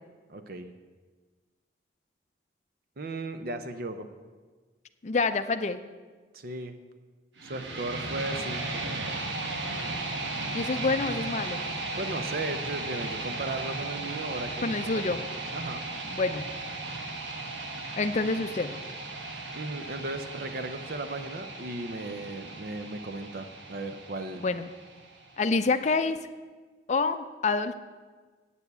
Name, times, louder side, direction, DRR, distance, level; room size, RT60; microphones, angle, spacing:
voice 1, 0.3-0.7 3.0-4.1 6.3-6.7 7.4-8.8 12.0-15.2 15.5-15.8 19.5-24.4, right 2 dB, 50° right, 8 dB, 0.6 m, -36 dB
voice 2, 5.0-5.8 10.5-11.6 14.6-15.2 16.1-16.5 18.0-18.7 24.4-24.7 25.4-26.2 26.9-27.7, left 3 dB, 40° left, 9 dB, 0.4 m, -27 dB
sound 1, 7.4-25.4, right 2 dB, 80° right, 1.3 m, -36 dB
8.4 x 7.1 x 8.0 m, 1.4 s
head